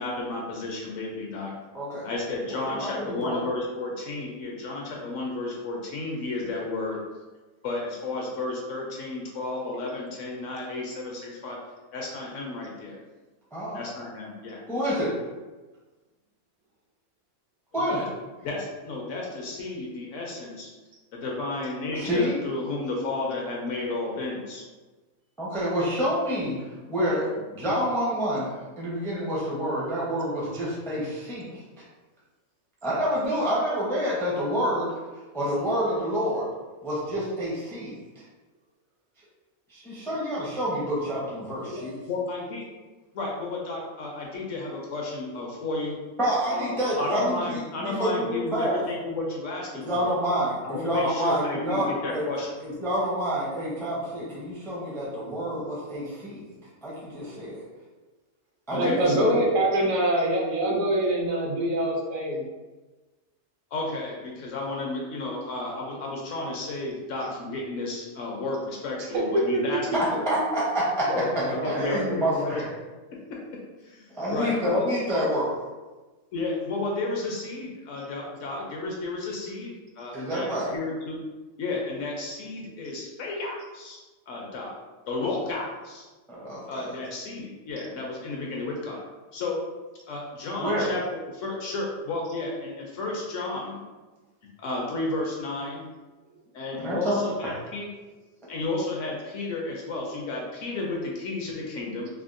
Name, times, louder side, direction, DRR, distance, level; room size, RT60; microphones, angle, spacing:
voice 1, 0.0-1.5 2.0-7.0 7.6-11.6 11.9-13.0 13.7-14.6 17.9-18.1 18.4-20.7 21.1-24.6 41.7-42.7 43.1-46.0 46.5-50.1 50.6-52.5 58.7-59.4 63.7-70.3 71.1-72.6 73.8-74.9 76.3-81.2 81.6-84.7 85.1-86.1 86.7-89.0 89.3-89.6 90.1-91.0 91.3-93.8 94.6-95.9 96.5-97.9 98.5-102.1, left 2 dB, 70° left, -2 dB, 0.8 m, -32 dB
voice 2, 1.7-2.1 2.5-3.5 13.5-13.8 14.7-15.1 17.7-18.0 21.9-22.4 25.4-26.6 26.9-31.6 32.8-34.9 35.3-36.5 36.8-38.0 39.7-41.9 46.2-48.8 49.7-52.2 52.6-56.4 56.8-57.6 58.7-59.4 69.9-71.0 71.6-72.7 74.1-75.5 80.1-80.7 86.3-86.9 90.6-90.9 96.7-97.5, equal, 5° left, -7 dB, 0.3 m, -28 dB
voice 3, 58.7-62.4 69.5-69.8 71.5-72.0, right 1 dB, 70° right, -2 dB, 1.0 m, -25 dB
3.4 x 2.2 x 2.4 m, 1.2 s
omnidirectional pair, 1.5 m